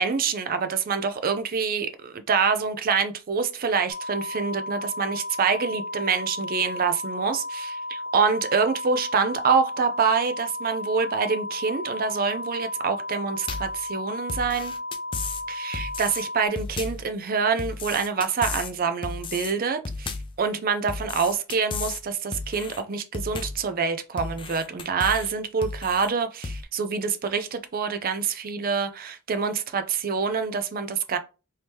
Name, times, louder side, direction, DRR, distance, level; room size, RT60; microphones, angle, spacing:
voice 1, 0.0-14.7 15.5-31.2, right 5 dB, 40° right, 0.4 m, -26 dB
sound 1, 3.9-16.5, left 2 dB, 20° right, 1.5 m, -34 dB
sound 2, 13.5-13.8 14.3-15.4 15.7-16.2 16.6-17.1 17.6-18.7 19.0-19.5 19.8-20.4 20.9-22.0 22.3-22.8 23.1-23.7 24.2-25.3 25.6-26.1 26.4-26.6, left 4 dB, 25° left, 0.3 m, -34 dB
3.1 x 2.8 x 3.4 m
head